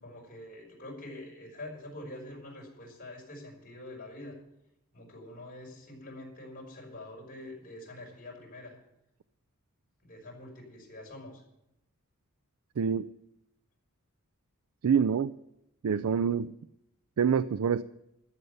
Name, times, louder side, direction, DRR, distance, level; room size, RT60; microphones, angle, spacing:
voice 1, 0.0-4.4 4.9-8.8 10.0-11.4, left 1 dB, 40° left, -2 dB, 5.4 m, -45 dB
voice 2, 12.8-13.1 14.8-15.3 15.8-16.6 17.2-17.8, right 7 dB, 70° right, 14 dB, 0.4 m, -26 dB
13.5 x 7.9 x 8.0 m, 0.84 s
head